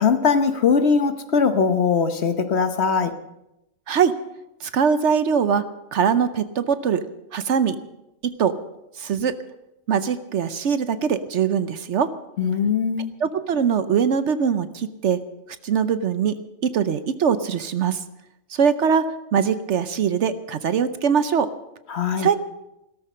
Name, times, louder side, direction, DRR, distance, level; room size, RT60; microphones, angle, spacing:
voice 1, 0.0-3.1 12.4-13.1 21.9-22.3, left 5 dB, 55° left, 9 dB, 1.2 m, -20 dB
voice 2, 4.6-5.6 5.9-7.0 7.3-7.8 8.2-8.5 9.0-9.4 9.9-12.1 13.2-15.2 15.6-16.4 16.6-18.0 18.6-19.0 19.3-21.5 22.2-22.4, right 7 dB, 65° right, 12 dB, 1.0 m, -21 dB
17.0 x 13.5 x 5.5 m, 0.89 s
omnidirectional pair, 1.4 m